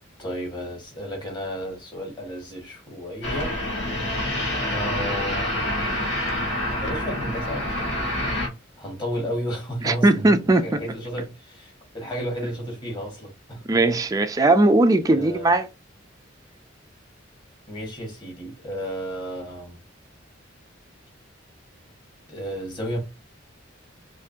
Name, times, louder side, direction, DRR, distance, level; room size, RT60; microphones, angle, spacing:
voice 1, 0.2-3.5 4.7-5.7 6.8-8.0 8.8-13.6 15.1-15.5 17.7-19.8 22.3-23.0, equal, 25° left, 1.7 m, -32 dB
sound 1, 3.2-8.5, left 1 dB, 60° left, 1.7 m, -27 dB
voice 2, 9.8-10.8 13.7-15.7, right 2 dB, 20° right, 0.3 m, -19 dB
4.8 x 2.6 x 2.7 m
head